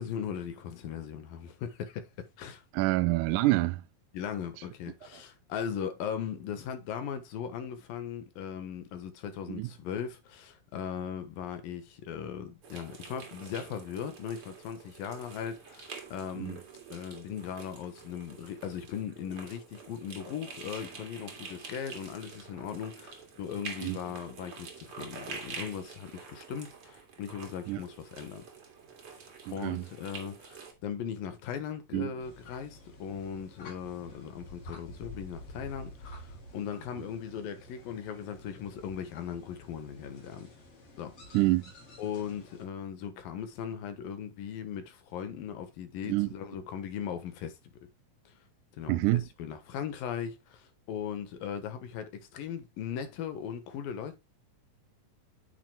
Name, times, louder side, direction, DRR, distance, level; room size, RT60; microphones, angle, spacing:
voice 1, 0.0-2.6 4.1-16.6 16.9-28.4 29.5-40.5 41.0-41.5 42.0-47.6 48.8-54.2, left 8 dB, 80° left, 3.1 m, -38 dB
voice 2, 2.7-3.8 9.5-9.7 16.4-16.6 23.8-24.0 27.7-27.8 29.5-29.9 31.9-32.1 41.3-41.7 46.1-46.3 48.9-49.3, right 19 dB, 80° right, 1.8 m, -27 dB
sound 1, 12.6-30.7, right 5 dB, 45° right, 2.6 m, -47 dB
sound 2, 32.2-42.7, left 1 dB, 45° left, 3.8 m, -50 dB
9.0 x 8.5 x 2.3 m
omnidirectional pair, 4.0 m